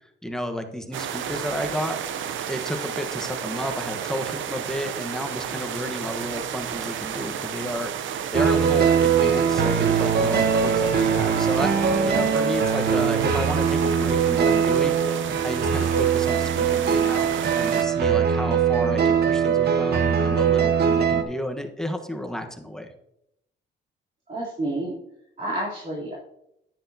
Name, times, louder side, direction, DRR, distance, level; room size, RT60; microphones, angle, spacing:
voice 1, 0.0-2.0 2.5-17.3 17.5-22.9, equal, 5° left, 4 dB, 1.2 m, -32 dB
sound 1, 0.9-17.8, right 8 dB, 75° right, 0.7 m, -32 dB
sound 2, 8.3-21.2, right 7 dB, 55° right, 1.1 m, -21 dB
voice 2, 24.3-25.0 25.4-26.1, right 1 dB, 40° right, -7 dB, 3.3 m, -29 dB
10.5 x 9.9 x 2.8 m, 0.81 s
cardioid pair, 90°, 20 cm